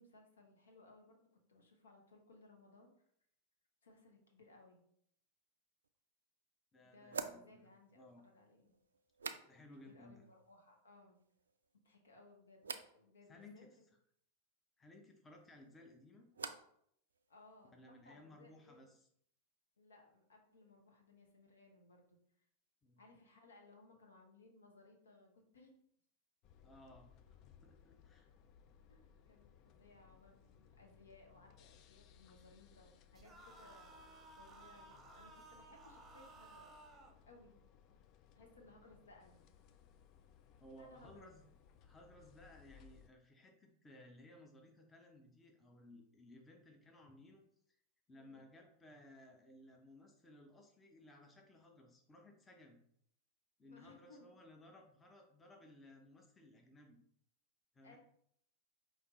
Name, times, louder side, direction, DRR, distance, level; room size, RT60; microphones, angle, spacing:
voice 1, 0.0-3.0 3.8-4.9 6.8-8.7 9.9-11.2 11.8-13.9 17.3-18.9 19.8-22.2 23.0-25.7 28.9-34.1 34.4-36.7 37.3-37.6 38.3-39.4 40.8-41.3 48.2-48.4 53.6-54.3 57.8-58.0, left 2 dB, 70° left, 2 dB, 0.9 m, -63 dB
sound 1, 5.8-5.9 7.1-9.9 10.2-10.8 11.1-11.8 12.6-13.0 15.4-16.8 17.1-17.7, right 5 dB, 70° right, 0.3 m, -50 dB
voice 2, 6.7-7.7 7.9-8.2 9.5-10.2 13.3-13.7 14.8-16.3 17.7-19.1 22.8-23.0 26.6-28.3 40.6-41.4 41.8-47.8 48.1-52.8 53.6-57.0 57.7-58.0, left 1 dB, 15° left, 2 dB, 0.7 m, -60 dB
sound 2, 26.4-43.1, left 8 dB, 40° left, 0.3 m, -65 dB
sound 3, 33.1-37.2, right 2 dB, 15° right, 0.8 m, -58 dB
5.0 x 2.8 x 3.0 m, 0.69 s
figure-of-eight pair, 90°, 0 cm